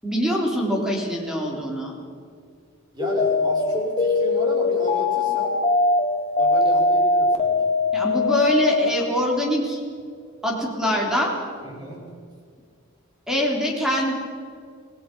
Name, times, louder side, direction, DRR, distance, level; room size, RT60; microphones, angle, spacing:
voice 1, 0.0-2.0 7.9-9.8 10.4-11.3 13.3-14.1, equal, 5° right, -1 dB, 3.7 m, -23 dB
voice 2, 2.9-5.6 6.4-7.7 11.6-12.2, equal, 20° right, -1 dB, 5.6 m, -32 dB
sound 1, 3.0-8.9, left 3 dB, 30° left, 1.8 m, -21 dB
26.5 x 18.5 x 5.5 m, 2.2 s
head